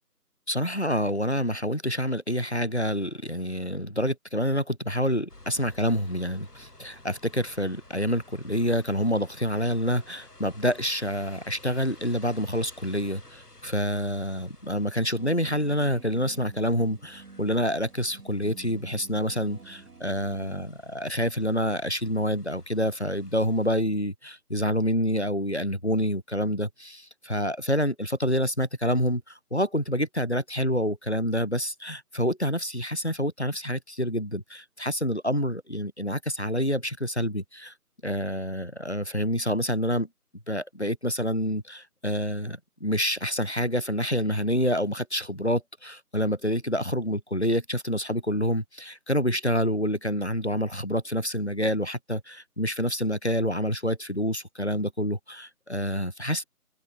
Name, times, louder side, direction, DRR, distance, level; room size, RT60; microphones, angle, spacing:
voice 1, 0.5-37.7 38.0-40.1 40.5-56.4, equal, 45° left, 0.5 m, -27 dB
sound 1, 5.3-23.8, left 2 dB, 75° left, 6.2 m, -54 dB
sound 2, 15.2-20.6, right 5 dB, 65° right, 0.8 m, -49 dB
figure-of-eight pair, 175°, 47 cm